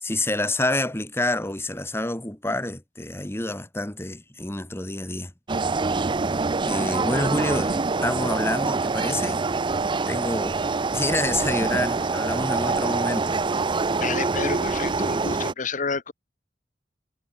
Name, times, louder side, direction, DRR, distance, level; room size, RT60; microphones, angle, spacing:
voice 1, 0.0-5.3 6.6-9.4 10.1-10.6 10.9-13.4, left 1 dB, 15° left, 1.9 m, -28 dB
sound 1, 5.5-15.5, right 4 dB, 25° right, 0.5 m, -25 dB
voice 2, 14.0-16.1, left 4 dB, 45° left, 1.3 m, -30 dB
head